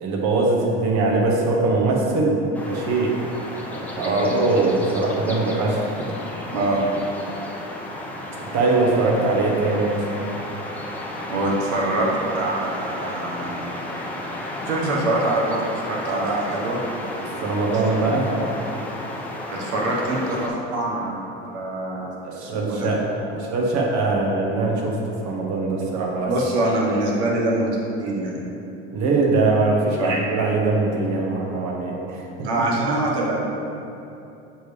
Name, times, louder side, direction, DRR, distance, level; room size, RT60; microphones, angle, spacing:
voice 1, 0.0-3.1 3.7-5.9 8.5-10.2 17.4-18.4 22.2-26.3 28.9-32.5, right 3 dB, 55° right, -2 dB, 1.5 m, -22 dB
sound 1, 2.5-20.5, left 1 dB, 5° left, 0.9 m, -33 dB
voice 2, 6.5-6.8 11.3-12.1 12.3-13.7 14.7-16.8 19.5-21.2 21.4-22.1 22.4-22.9 26.3-27.7 28.0-28.4 30.0-30.2 32.4-33.4, right 2 dB, 80° right, -3 dB, 1.4 m, -24 dB
7.6 x 5.0 x 3.4 m, 2.8 s
hypercardioid pair, 80°, 34 cm